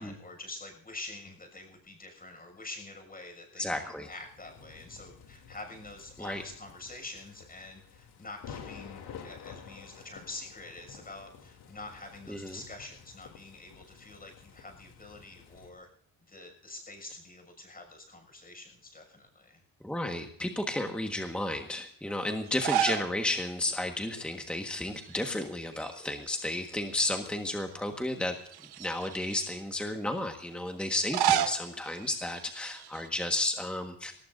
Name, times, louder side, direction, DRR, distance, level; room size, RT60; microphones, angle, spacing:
voice 1, 0.0-15.9 16.3-19.6, left 2 dB, 25° left, 4 dB, 6.5 m, -46 dB
voice 2, 3.6-4.1 6.2-6.4 12.3-12.6 19.8-28.4 28.8-34.1, left 1 dB, 5° left, 4 dB, 1.5 m, -33 dB
sound 1, 4.0-15.7, left 7 dB, 90° left, 3.0 m, -50 dB
sound 2, 22.5-23.1 23.5-23.6 24.9-25.4 25.7-26.9 27.5-27.6 28.5-29.6 30.9-33.1, right 10 dB, 85° right, 1.1 m, -32 dB
22.5 x 19.0 x 2.6 m, 0.63 s
cardioid pair, 115°, 38 cm